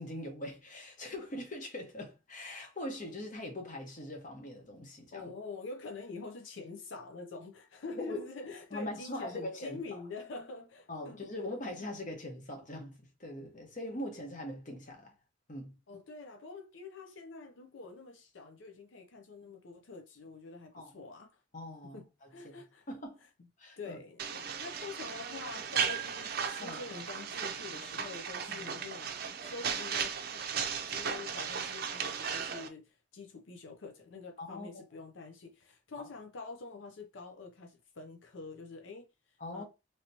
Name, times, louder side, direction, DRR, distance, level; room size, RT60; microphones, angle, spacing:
voice 1, 0.0-5.3 7.9-8.2 8.7-9.8 10.9-15.1 15.5-15.7 20.7-20.9 21.5-22.0 22.9-23.2 23.6-24.0 26.6-26.8 28.5-28.8 34.4-34.8 36.0-36.1 39.4-39.6, left 1 dB, 45° left, 1.0 m, -41 dB
voice 2, 5.1-11.2 15.9-21.4 21.9-22.9 23.8-30.4 30.9-39.6, left 4 dB, 90° left, 0.6 m, -46 dB
sound 1, 24.2-32.7, right 7 dB, 55° right, 0.5 m, -36 dB
3.2 x 2.9 x 2.8 m
head